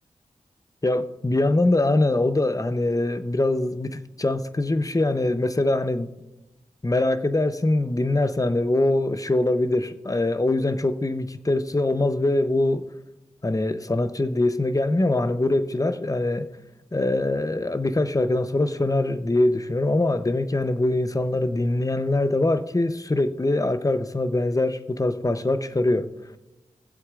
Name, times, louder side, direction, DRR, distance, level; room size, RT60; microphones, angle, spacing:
voice 1, 0.8-6.1 6.8-12.9 13.4-16.5 16.9-26.1, left 2 dB, 25° left, 0.7 m, -23 dB
21.5 x 7.8 x 2.5 m
cardioid pair, 50°, 13 cm